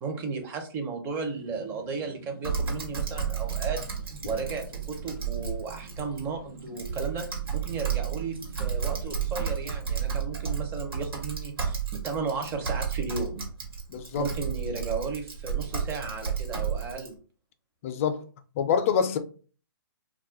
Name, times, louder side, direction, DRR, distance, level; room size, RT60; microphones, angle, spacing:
voice 1, 0.0-3.8 4.2-7.2 7.5-13.5 14.2-17.2, right 4 dB, 20° right, 0.5 m, -34 dB
sound 1, 1.1-9.4, right 2 dB, 50° right, 1.0 m, -49 dB
Typing, 2.4-17.1, right 7 dB, 75° right, 1.3 m, -32 dB
voice 2, 13.9-14.3 17.8-18.2 18.6-19.2, left 7 dB, 35° left, 0.4 m, -26 dB
2.3 x 2.1 x 3.7 m
hypercardioid pair, 135°, 12 cm